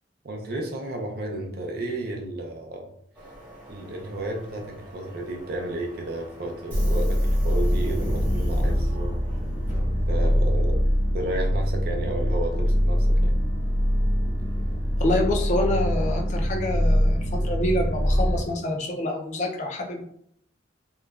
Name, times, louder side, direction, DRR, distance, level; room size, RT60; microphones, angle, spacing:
voice 1, 0.2-2.9 3.7-9.2 10.1-10.8 11.1-13.4, right 1 dB, 55° right, 1 dB, 0.4 m, -32 dB
Subway metro underground, 3.2-10.6, equal, 10° right, 0.8 m, -38 dB
sound 1, 6.7-18.4, equal, 85° left, 0.6 m, -23 dB
voice 2, 15.0-20.1, left 1 dB, 40° left, 2 dB, 0.4 m, -27 dB
2.9 x 2.1 x 2.3 m, 0.69 s
head